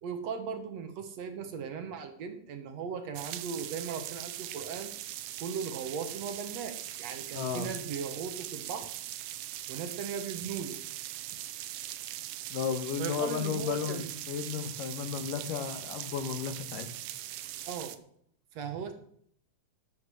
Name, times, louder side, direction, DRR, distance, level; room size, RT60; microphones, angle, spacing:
voice 1, 0.0-4.9 5.4-8.9 9.7-10.8 13.0-14.1 14.5-14.7 17.7-18.0 18.5-18.9, right 6 dB, 60° right, 7 dB, 2.0 m, -38 dB
sound 1, 3.1-18.0, right 13 dB, 80° right, 2.3 m, -41 dB
voice 2, 7.3-7.7 12.5-16.9, left 7 dB, 80° left, 9 dB, 2.8 m, -34 dB
12.5 x 8.1 x 7.5 m, 0.66 s
omnidirectional pair, 3.8 m